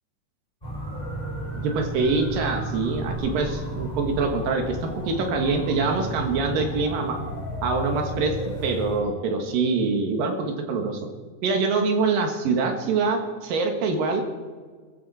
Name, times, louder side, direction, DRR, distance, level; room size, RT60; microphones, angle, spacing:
sound 1, 0.6-9.0, right 1 dB, 10° left, 5.3 m, -33 dB
voice 1, 1.5-7.2 7.6-8.3 8.6-11.0 11.4-14.3, right 4 dB, 85° right, 4 dB, 3.4 m, -24 dB
21.0 x 15.0 x 4.3 m, 1.5 s
omnidirectional pair, 3.8 m